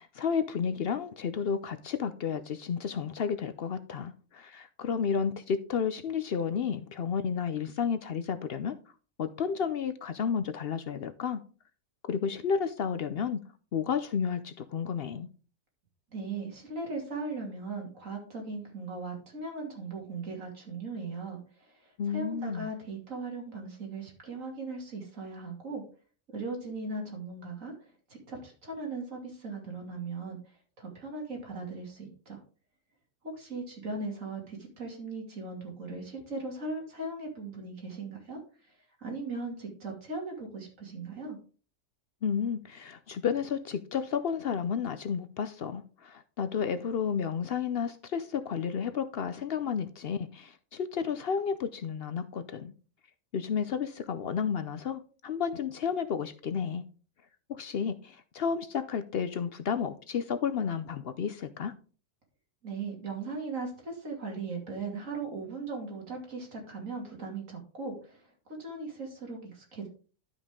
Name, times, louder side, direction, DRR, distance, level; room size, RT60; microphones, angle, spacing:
voice 1, 0.0-8.8 9.2-11.4 12.0-13.4 13.7-15.3 22.0-22.7 42.2-52.7 53.3-56.8 57.5-61.7, left 7 dB, 60° left, 0.7 m, -32 dB
voice 2, 16.1-25.8 26.3-27.7 28.3-30.4 30.8-32.4 33.2-38.4 39.0-41.4 62.6-69.9, right 3 dB, 85° right, 2.9 m, -38 dB
12.0 x 5.3 x 3.6 m
omnidirectional pair, 1.3 m